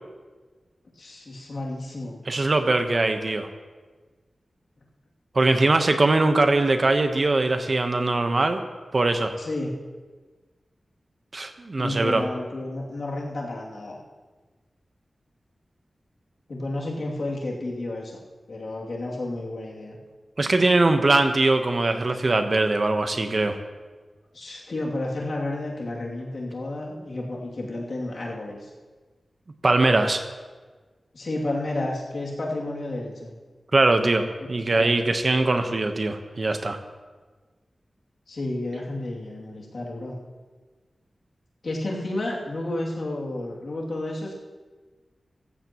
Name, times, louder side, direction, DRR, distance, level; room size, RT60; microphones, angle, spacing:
voice 1, 0.9-2.2 9.4-9.7 11.8-14.0 16.5-18.2 18.5-20.0 24.3-28.7 31.1-33.3 34.7-35.0 38.3-40.1 41.6-44.3, left 2 dB, 70° left, -3 dB, 2.7 m, -31 dB
voice 2, 2.3-3.5 5.3-8.6 8.9-9.3 11.3-12.2 20.4-23.6 29.6-30.2 33.7-36.8, right 2 dB, 45° right, 7 dB, 1.0 m, -21 dB
16.0 x 14.0 x 3.0 m, 1.4 s
wide cardioid pair, 85°, 0 cm